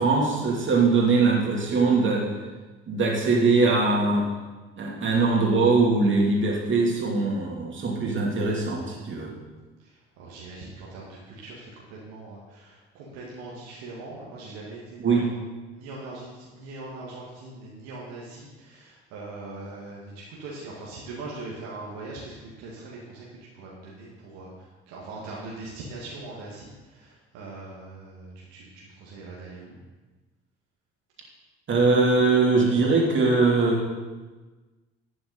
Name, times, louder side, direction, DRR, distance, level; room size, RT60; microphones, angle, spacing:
voice 1, 0.0-2.3 2.9-4.3 4.8-9.3 15.0-15.3 31.7-33.8, right 3 dB, 40° right, -2 dB, 2.8 m, -21 dB
voice 2, 9.8-15.3 15.7-23.3 23.5-29.8, right 2 dB, 65° right, -4 dB, 1.8 m, -41 dB
11.0 x 9.1 x 4.0 m, 1.3 s
figure-of-eight pair, 55°, 31 cm